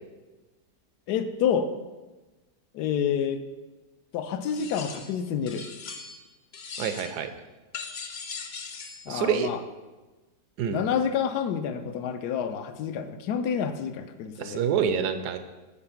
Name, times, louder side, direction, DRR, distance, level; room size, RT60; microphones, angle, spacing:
voice 1, 1.1-1.7 2.7-3.4 4.1-5.7 9.1-9.6 10.7-14.6, left 7 dB, 75° left, 10 dB, 1.1 m, -28 dB
sound 1, 4.5-5.2 5.5-6.3 6.5-7.2 7.7-9.1, left 5 dB, 50° left, 0.8 m, -39 dB
voice 2, 6.8-7.3 9.1-9.5 10.6-10.8 14.4-15.4, right 8 dB, 75° right, 9 dB, 1.1 m, -27 dB
6.8 x 4.8 x 7.0 m, 1.2 s
omnidirectional pair, 1.8 m